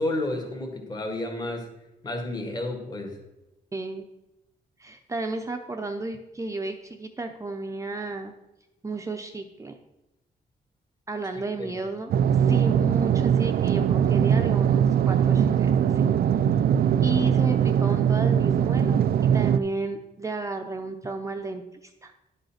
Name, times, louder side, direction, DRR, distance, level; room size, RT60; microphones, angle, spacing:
voice 1, 0.0-1.7 2.0-3.2 11.6-11.7, left 1 dB, 25° left, 3 dB, 1.7 m, -31 dB
voice 2, 3.7-4.0 4.8-8.3 8.8-9.7 11.1-16.1 17.0-19.0 19.3-22.2, right 2 dB, 20° right, 5 dB, 0.6 m, -33 dB
sound 1, 12.1-19.6, right 9 dB, 65° right, 0.4 m, -21 dB
11.0 x 5.4 x 5.7 m, 0.96 s
wide cardioid pair, 155°, 17 cm